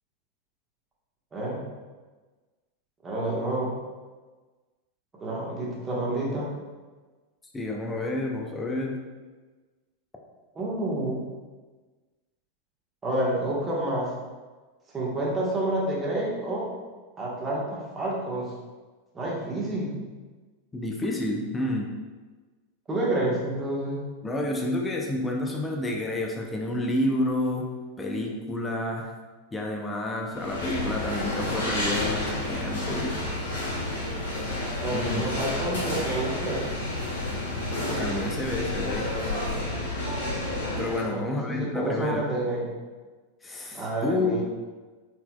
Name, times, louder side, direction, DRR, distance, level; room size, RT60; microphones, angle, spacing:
voice 1, 1.3-1.6 3.0-3.7 5.2-6.5 10.5-11.3 13.0-14.1 14.9-16.7 17.2-18.5 19.1-20.0 22.9-24.0 34.8-36.6 41.0-42.7 43.7-44.4, right 1 dB, 20° right, -4 dB, 1.3 m, -29 dB
voice 2, 7.5-9.0 20.7-21.9 24.2-27.7 28.0-29.1 29.5-33.1 34.9-35.2 38.0-39.1 40.8-42.2 43.4-44.4, left 1 dB, 15° left, 0 dB, 0.6 m, -29 dB
sound 1, 30.3-41.1, left 1 dB, 70° left, 1.4 m, -30 dB
4.3 x 4.1 x 2.3 m, 1.3 s
figure-of-eight pair, 90°, 0 cm